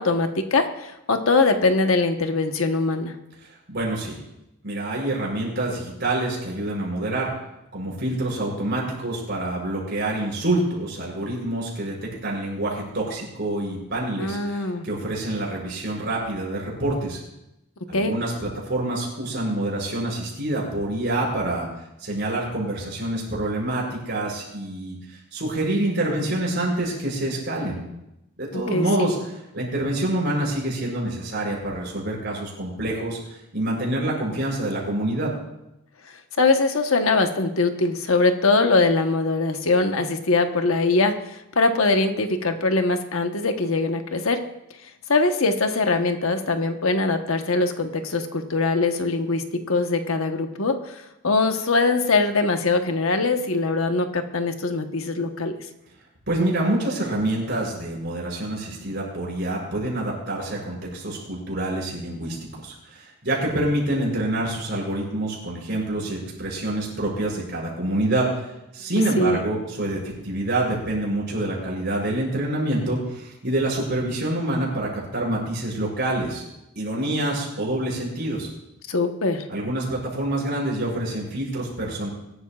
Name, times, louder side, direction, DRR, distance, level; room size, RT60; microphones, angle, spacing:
voice 1, 0.0-3.1 14.2-14.9 17.9-18.2 28.5-29.1 36.4-44.4 45.1-55.6 69.2-69.4 78.9-79.5, left 3 dB, 70° left, 6 dB, 1.1 m, -22 dB
voice 2, 3.7-4.2 4.6-7.3 7.7-17.2 17.9-21.7 22.0-25.0 25.3-27.8 28.4-29.2 29.5-33.2 33.5-35.3 56.3-68.5 68.7-76.4 76.7-78.5 79.5-82.1, right 1 dB, 50° right, -4 dB, 6.2 m, -26 dB
23.0 x 12.5 x 2.4 m, 0.88 s
head